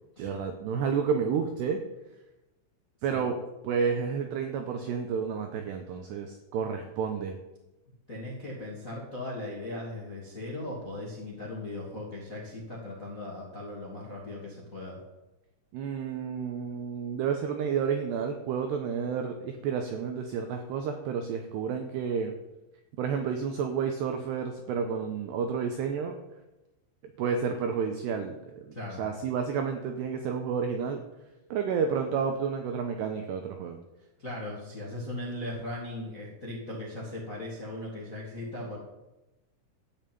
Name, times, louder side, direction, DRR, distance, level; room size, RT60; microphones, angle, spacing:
voice 1, 0.2-1.8 3.0-7.4 15.7-22.3 23.0-26.2 27.2-31.0 31.5-33.8, right 6 dB, 80° right, 5 dB, 2.4 m, -30 dB
voice 2, 8.1-15.0 28.7-29.0 34.2-38.8, left 1 dB, 35° left, -3 dB, 1.3 m, -38 dB
13.5 x 5.7 x 9.1 m, 0.98 s
omnidirectional pair, 6.0 m